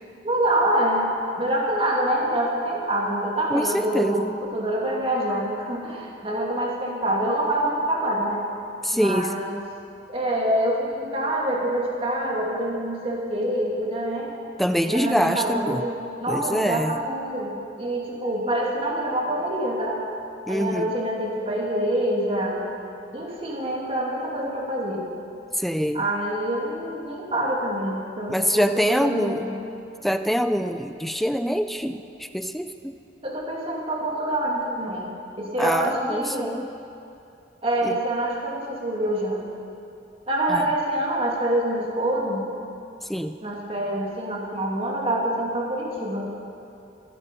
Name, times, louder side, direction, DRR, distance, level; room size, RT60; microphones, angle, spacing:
voice 1, 0.2-8.4 8.9-9.6 10.1-14.3 14.8-20.0 20.5-22.6 23.1-25.0 25.9-29.6 33.2-36.5 37.6-39.4 40.3-42.5 43.4-46.3, right 1 dB, 30° right, -2 dB, 2.2 m, -26 dB
voice 2, 3.5-4.3 8.8-9.3 14.6-15.8 16.3-16.9 20.5-20.9 25.6-26.0 28.3-29.5 30.0-32.0 32.3-32.9 35.6-36.7 40.5-40.6 43.1-43.3, equal, ahead, 9 dB, 0.3 m, -24 dB
23.0 x 8.3 x 5.2 m, 2.7 s
head